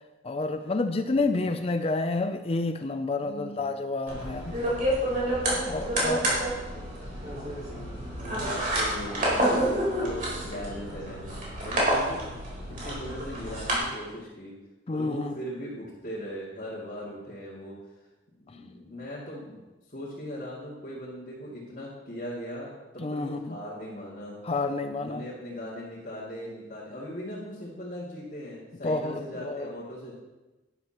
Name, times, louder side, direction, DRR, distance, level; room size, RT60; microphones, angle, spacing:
voice 1, 0.2-4.6 5.6-6.2 14.9-15.3 18.5-18.6 23.0-23.6 24.4-25.2 28.8-29.7, left 3 dB, 35° left, 8 dB, 0.4 m, -29 dB
voice 2, 1.0-1.5 3.2-3.6 4.5-4.6 5.5-6.4 6.7-12.3 12.7-14.5 14.9-17.8 18.5-19.6 19.9-24.4 25.0-30.1, equal, 50° left, -9 dB, 2.6 m, -39 dB
sound 1, 4.1-13.8, right 1 dB, 45° right, 3.9 m, -29 dB
12.0 x 11.0 x 3.0 m, 1.1 s
head